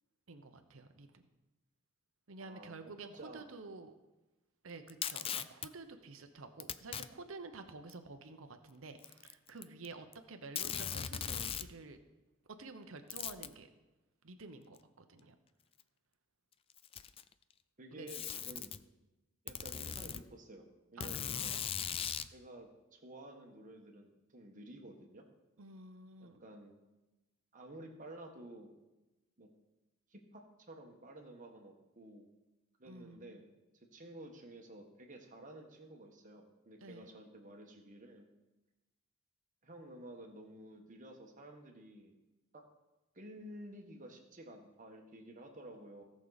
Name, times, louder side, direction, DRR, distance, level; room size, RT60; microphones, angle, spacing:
voice 1, 0.3-1.2 2.3-3.9 4.6-12.0 12.5-13.7 14.2-15.3 17.9-18.1 18.5-18.6 21.0-21.6 21.9-22.1 25.6-26.4 32.8-33.4 36.8-37.1, right 3 dB, 75° right, 7 dB, 0.9 m, -50 dB
voice 2, 2.4-3.4 17.8-18.7 19.4-20.7 20.9-21.6 22.3-25.2 26.2-26.7 27.5-28.7 29.4-29.5 30.1-32.3 32.8-33.4 33.9-38.2 39.6-42.1 42.5-42.7 43.1-46.0, right 1 dB, 40° right, 3 dB, 1.5 m, -52 dB
Packing tape duct tape, 4.9-5.7 6.6-7.1 7.9-8.0 9.0-9.9 10.1-10.2 10.6-11.7 13.1-13.5 14.8-14.9 15.8-15.9 16.7-17.3 18.1-18.8 19.5-20.2 21.0-22.3, left 9 dB, 25° left, 0.3 m, -39 dB
17.5 x 6.4 x 4.1 m, 1.1 s
head